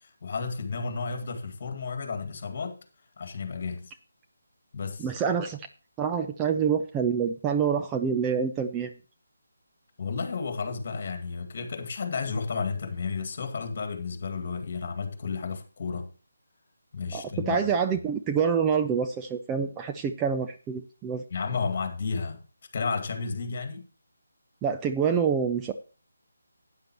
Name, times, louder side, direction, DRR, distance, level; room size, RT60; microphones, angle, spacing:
voice 1, 0.0-2.8 3.2-3.9 4.7-5.1 10.0-16.1 16.9-17.6 21.3-22.4 22.7-23.9, left 5 dB, 45° left, 2.1 m, -32 dB
voice 2, 5.0-5.7 6.0-8.9 17.1-21.2 24.6-25.7, right 6 dB, 15° right, 0.5 m, -27 dB
12.5 x 9.4 x 3.0 m
figure-of-eight pair, 160°, 0 cm